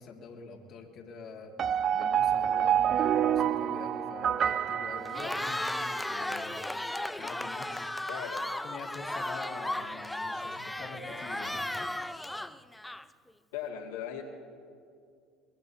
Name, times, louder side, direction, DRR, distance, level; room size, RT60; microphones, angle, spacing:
voice 1, 0.0-1.5 1.9-6.6 7.2-7.9 8.6-11.9, left 4 dB, 55° left, 0 dB, 1.8 m, -45 dB
sound 1, 1.6-5.9, right 9 dB, 45° right, 0.4 m, -28 dB
Cheering, 5.0-13.3, left 1 dB, 5° left, 0.5 m, -35 dB
voice 2, 8.1-8.5 13.5-14.2, left 9 dB, 85° left, -2 dB, 2.3 m, -38 dB
23.5 x 20.0 x 2.8 m, 2.3 s
hypercardioid pair, 85°, 0 cm